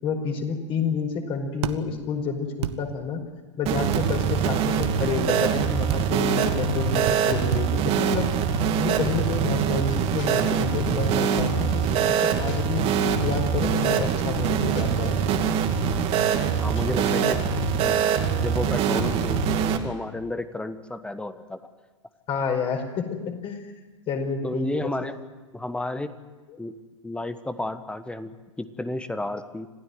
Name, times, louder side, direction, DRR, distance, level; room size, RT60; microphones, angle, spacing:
voice 1, 0.0-3.2 3.6-8.3 8.8-12.8 13.2-15.2 22.3-23.6 24.1-25.2, left 5 dB, 35° left, 3 dB, 4.9 m, -29 dB
sound 1, 1.6-1.8 2.6-2.8 3.9-4.1 4.8-5.0 5.9-6.0 7.1-7.2 7.5-7.7, right 12 dB, 60° right, 1.4 m, -29 dB
sound 2, 3.7-19.8, right 7 dB, 40° right, 2.4 m, -24 dB
sound 3, 9.0-18.0, left 5 dB, 80° left, 3.8 m, -42 dB
voice 2, 16.5-17.4 17.8-18.0 18.3-21.6 24.4-25.2 25.5-26.1 26.6-26.7 27.0-29.7, left 2 dB, 5° left, 11 dB, 1.4 m, -32 dB
26.5 x 16.0 x 9.5 m, 1.3 s
figure-of-eight pair, 100°, 16 cm